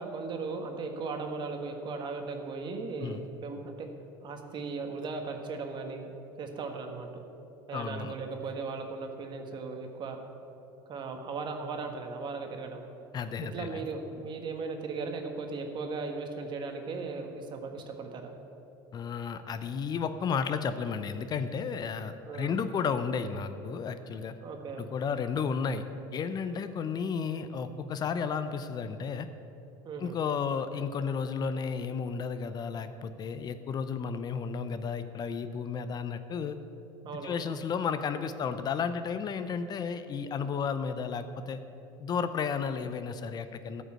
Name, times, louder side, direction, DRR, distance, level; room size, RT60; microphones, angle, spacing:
voice 1, 0.0-3.9 4.2-6.1 6.4-7.1 7.7-10.2 10.9-12.8 13.4-18.3 22.3-22.6 24.4-24.8 29.8-30.2 37.0-37.5, right 4 dB, 45° right, 4 dB, 1.5 m, -37 dB
voice 2, 7.7-8.1 13.1-13.8 18.9-24.3 24.8-25.8 26.1-29.3 30.0-36.6 37.2-41.6 42.0-43.8, left 6 dB, 40° left, 11 dB, 0.6 m, -33 dB
13.5 x 5.2 x 7.6 m, 2.9 s
supercardioid pair, 100°, 11 cm